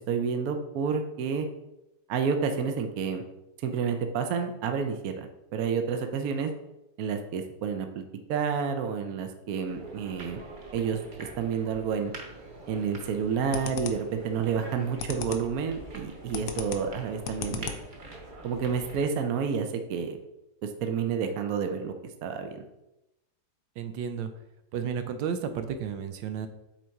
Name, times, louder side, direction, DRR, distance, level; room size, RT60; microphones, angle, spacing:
voice 1, 0.1-1.5 2.1-3.2 3.6-6.5 7.0-8.0 8.3-10.4 10.7-12.1 12.7-17.7 18.4-20.2 20.6-21.9 22.2-22.6, right 6 dB, 65° right, 6 dB, 1.0 m, -29 dB
sound 1, 9.7-19.0, right 2 dB, 35° right, 0.9 m, -45 dB
sound 2, 12.8-13.1 13.5-14.2 14.6-15.6 15.8-18.1, left 7 dB, 90° left, 1.4 m, -36 dB
voice 2, 23.8-24.3 24.7-26.5, right 7 dB, 90° right, 8 dB, 1.4 m, -32 dB
7.4 x 4.1 x 4.5 m, 0.93 s
omnidirectional pair, 2.0 m